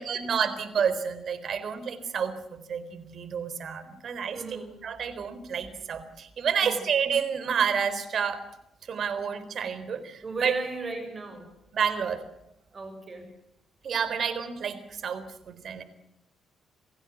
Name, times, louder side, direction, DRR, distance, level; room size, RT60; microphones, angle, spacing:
voice 1, 0.0-2.3 2.7-4.4 4.8-8.5 8.9-10.5 11.7-12.2 13.8-15.8, right 7 dB, 55° right, 13 dB, 4.0 m, -29 dB
voice 2, 4.3-4.7 6.6-6.8 10.2-11.5 12.7-13.2, right 3 dB, 35° right, 6 dB, 7.3 m, -36 dB
29.5 x 16.5 x 7.4 m, 0.84 s
cardioid pair, 90°, 0 cm